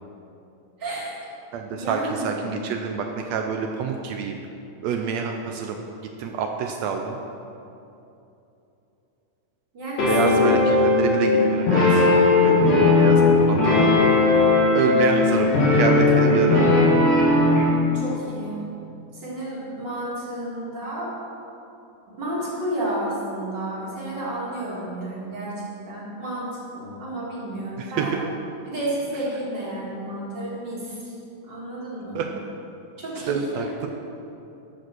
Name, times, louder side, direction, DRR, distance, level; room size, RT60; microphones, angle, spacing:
voice 1, 0.8-1.1 1.7-2.5 9.7-10.5 17.9-18.6 19.1-21.1 22.1-25.5 25.9-28.1 28.7-31.1 31.5-32.2 33.0-33.8, right 1 dB, 35° right, -7 dB, 2.7 m, -31 dB
voice 2, 1.5-4.4 4.8-5.8 6.2-7.2 10.1-12.1 12.4-13.2 13.5-14.1 14.7-16.6 27.8-28.2 32.1-32.2 33.3-33.9, right 6 dB, 90° right, 3 dB, 1.5 m, -27 dB
sound 1, 10.0-17.7, left 3 dB, 55° left, 3.6 m, -18 dB
12.5 x 5.1 x 6.1 m, 2.8 s
omnidirectional pair, 3.7 m